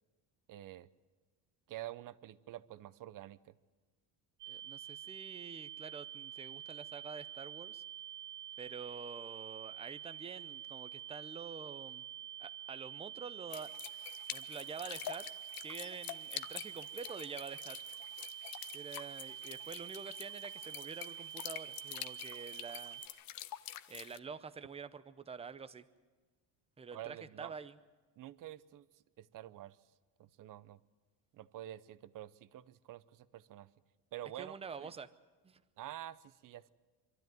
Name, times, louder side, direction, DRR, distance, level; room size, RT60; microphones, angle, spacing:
voice 1, 0.5-0.9 1.7-3.5 26.9-27.6 28.2-29.8 30.2-30.8 31.3-33.7 34.1-34.5 34.8-34.9 35.8-36.7, right 13 dB, 50° right, 17 dB, 0.8 m, -48 dB
sound 1, 4.4-23.1, right 11 dB, 75° right, 2.3 m, -47 dB
voice 2, 4.5-7.8 8.6-12.0 12.4-13.7 14.3-15.3 15.6-17.8 18.7-23.0 23.9-25.8 26.8-27.7 34.4-35.1 35.4-35.6, right 5 dB, 15° right, 12 dB, 0.7 m, -47 dB
sound 2, 13.5-24.2, left 13 dB, 55° left, 0.8 m, -47 dB
24.5 x 13.0 x 9.3 m, 1.4 s
cardioid pair, 135°, 42 cm